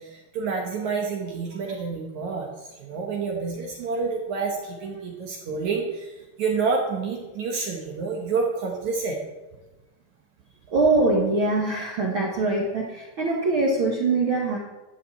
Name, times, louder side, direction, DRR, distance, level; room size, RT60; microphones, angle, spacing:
voice 1, 0.0-9.2, right 4 dB, 60° right, 1 dB, 2.1 m, -28 dB
voice 2, 10.7-14.6, right 2 dB, 85° right, -2 dB, 1.1 m, -23 dB
13.0 x 5.9 x 8.3 m, 1.1 s
omnidirectional pair, 4.8 m